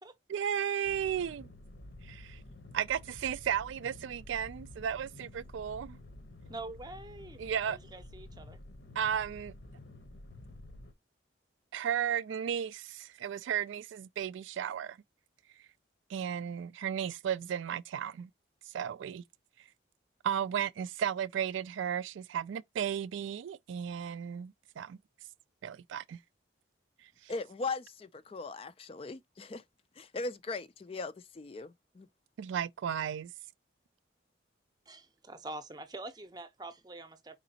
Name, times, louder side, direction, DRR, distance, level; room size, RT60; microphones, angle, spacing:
voice 1, 0.3-1.5 2.0-2.4 2.7-6.0 7.4-7.8 9.0-9.5 11.7-15.0 16.1-18.3 18.7-19.2 20.2-25.0 25.6-26.2 27.2-27.3 32.4-33.3, right 9 dB, 80° right, 0.3 m, -34 dB
sound 1, 0.8-10.9, left 1 dB, 65° left, 0.8 m, -50 dB
voice 2, 6.5-7.4 7.7-8.6 34.9-37.4, right 2 dB, 20° right, 0.6 m, -45 dB
voice 3, 27.3-29.6 30.0-32.1, left 3 dB, 30° left, 0.3 m, -39 dB
5.0 x 3.8 x 2.7 m
head